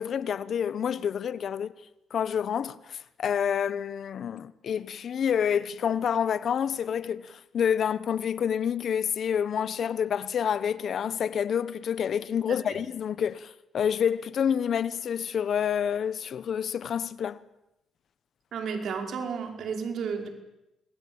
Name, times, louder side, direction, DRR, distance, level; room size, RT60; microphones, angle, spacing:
voice 1, 0.0-1.7 2.1-17.4, left 8 dB, 60° left, 1.1 m, -28 dB
voice 2, 12.5-12.8 18.5-20.3, right 6 dB, 65° right, 5.1 m, -33 dB
27.5 x 21.5 x 8.9 m
cardioid pair, 90°, 0 cm